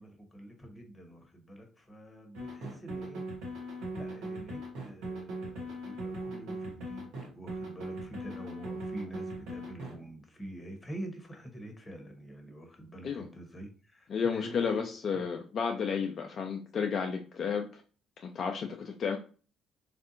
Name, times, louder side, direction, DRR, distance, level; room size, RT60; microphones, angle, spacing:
voice 1, 0.0-3.2 3.9-14.8 15.1-15.3, right 1 dB, 20° left, 4 dB, 1.0 m, -46 dB
sound 1, 2.3-9.9, right 1 dB, 70° right, 1.0 m, -39 dB
voice 2, 14.1-17.8 18.2-19.2, left 6 dB, 50° left, 3 dB, 0.4 m, -32 dB
3.3 x 2.5 x 2.6 m, 0.37 s
hypercardioid pair, 50°, 0 cm